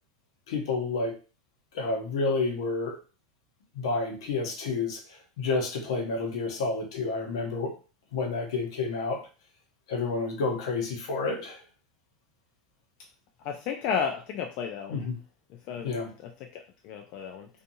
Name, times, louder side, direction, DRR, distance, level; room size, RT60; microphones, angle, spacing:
voice 1, 0.5-1.2 1.7-3.0 3.7-7.7 8.1-9.2 9.9-11.6 14.9-15.2 15.8-16.1, left 3 dB, 80° left, 3 dB, 0.8 m, -30 dB
voice 2, 13.4-15.0 15.7-15.9 16.5-17.5, left 7 dB, 55° left, 3 dB, 0.4 m, -32 dB
2.6 x 2.4 x 2.6 m, 0.35 s
hypercardioid pair, 105°, 3 cm